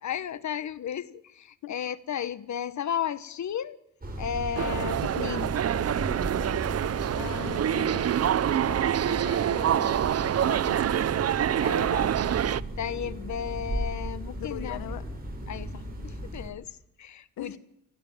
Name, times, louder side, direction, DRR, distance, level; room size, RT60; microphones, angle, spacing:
voice 1, 0.0-3.8 4.2-5.5 10.2-10.6 11.6-12.1 12.8-14.8 15.5-17.6, left 8 dB, 55° left, 16 dB, 1.3 m, -34 dB
sound 1, 4.0-16.5, right 1 dB, 25° right, 6.1 m, -37 dB
sound 2, 4.5-12.6, right 10 dB, 45° right, 0.7 m, -26 dB
voice 2, 7.2-8.1 8.6-11.0 14.3-15.0 17.4-17.6, left 11 dB, 85° left, 12 dB, 1.4 m, -40 dB
29.0 x 9.9 x 9.3 m, 0.83 s
cardioid pair, 90°, 34 cm